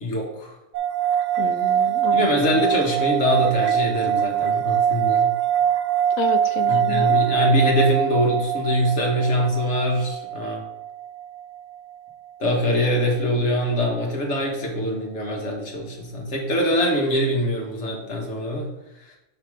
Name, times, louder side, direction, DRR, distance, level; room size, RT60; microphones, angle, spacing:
voice 1, 0.0-0.6 2.1-5.3 6.7-10.6 12.4-18.7 19.1-19.2, equal, 55° left, -1 dB, 1.6 m, -23 dB
sound 1, 0.7-12.1, right 10 dB, 70° right, 0.9 m, -23 dB
voice 2, 1.4-2.6 6.2-7.1, left 7 dB, 75° left, 8 dB, 1.0 m, -30 dB
5.7 x 4.1 x 4.8 m, 0.92 s
omnidirectional pair, 1.4 m